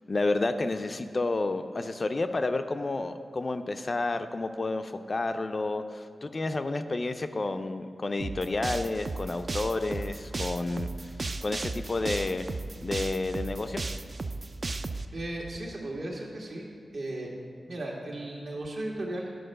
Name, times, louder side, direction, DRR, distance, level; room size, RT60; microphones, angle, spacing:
voice 1, 0.1-10.9 11.4-12.6 12.8-13.8, left 2 dB, 40° left, 8 dB, 0.4 m, -30 dB
sound 1, 8.2-15.0, right 3 dB, 40° right, 0.3 m, -34 dB
voice 2, 15.1-16.7 16.9-17.3 17.6-19.3, right 1 dB, 70° right, -2 dB, 1.7 m, -36 dB
10.0 x 4.5 x 6.5 m, 2.4 s
wide cardioid pair, 110°, 0 cm